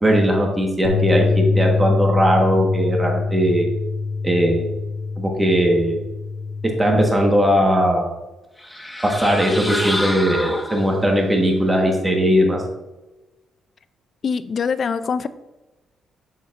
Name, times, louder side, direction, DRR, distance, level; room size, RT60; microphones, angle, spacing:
voice 1, 0.0-3.7 4.2-4.7 5.2-6.0 6.8-8.1 9.0-12.6, equal, 15° right, 1 dB, 1.3 m, -18 dB
sound 1, 0.8-7.1, left 4 dB, 90° left, 0.7 m, -24 dB
sound 2, 8.6-11.2, left 1 dB, 5° left, 0.9 m, -28 dB
voice 2, 14.2-15.3, left 6 dB, 50° left, 13 dB, 0.4 m, -23 dB
7.0 x 6.4 x 2.5 m, 1.0 s
cardioid pair, 90°, 0 cm